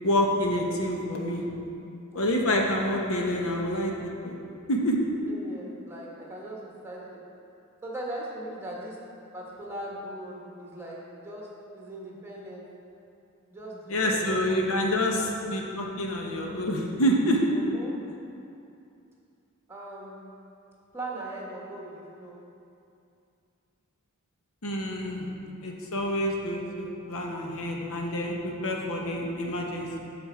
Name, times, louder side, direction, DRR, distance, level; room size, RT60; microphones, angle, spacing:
voice 1, 0.0-1.5 2.1-4.4 4.7-5.0 13.9-17.4 24.6-25.3 25.6-30.0, equal, 65° left, 0 dB, 1.1 m, -27 dB
voice 2, 2.1-2.6 5.3-7.3 7.8-9.1 9.3-12.7 13.5-15.3 17.5-18.2 19.7-20.3 20.9-22.4, right 1 dB, 10° right, -4 dB, 1.3 m, -40 dB
11.5 x 4.4 x 4.4 m, 2.6 s
head